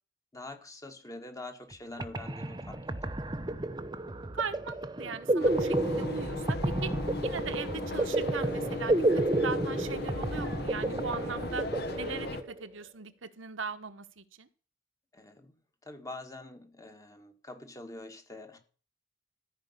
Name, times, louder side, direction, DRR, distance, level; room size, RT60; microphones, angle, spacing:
voice 1, 0.3-2.8 15.1-15.5 15.8-18.6, left 2 dB, 15° left, 1.7 m, -45 dB
sound 1, 1.7-1.8 2.0-12.6, right 1 dB, 20° right, 0.8 m, -31 dB
voice 2, 4.3-6.9 7.2-11.7 11.9-14.5, right 5 dB, 85° right, 1.2 m, -39 dB
sound 2, 5.4-12.4, left 2 dB, 55° left, 1.4 m, -37 dB
14.0 x 5.4 x 9.5 m
head